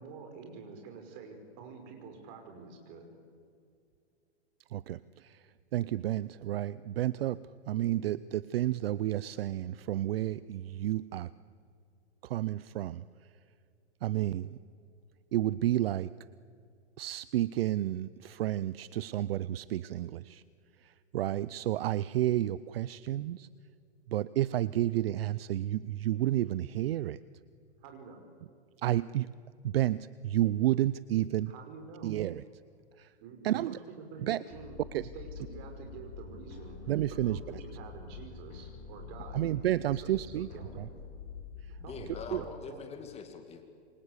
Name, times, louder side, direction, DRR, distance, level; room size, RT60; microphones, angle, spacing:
voice 1, 0.0-3.2 27.8-28.2 31.5-32.1 33.2-34.8 35.1-39.7 39.9-40.9 41.7-42.8, right 5 dB, 40° right, 5 dB, 5.9 m, -48 dB
voice 2, 4.7-5.4 5.7-11.3 12.2-13.0 14.0-14.6 15.3-16.1 17.0-20.4 20.8-23.5 24.1-27.2 28.8-29.3 29.6-31.5 32.0-32.4 33.0-33.1 33.4-33.8 34.2-34.4 34.9-35.0 36.9-37.4 39.3-40.5 40.8-40.9 42.3-42.4, right 13 dB, 60° right, 18 dB, 0.7 m, -31 dB
sound 1, 34.5-42.5, left 5 dB, 40° left, 5.1 m, -46 dB
voice 3, 41.8-43.6, left 5 dB, 20° left, 5 dB, 2.5 m, -44 dB
27.5 x 24.5 x 8.3 m, 2.4 s
hypercardioid pair, 135°, 34 cm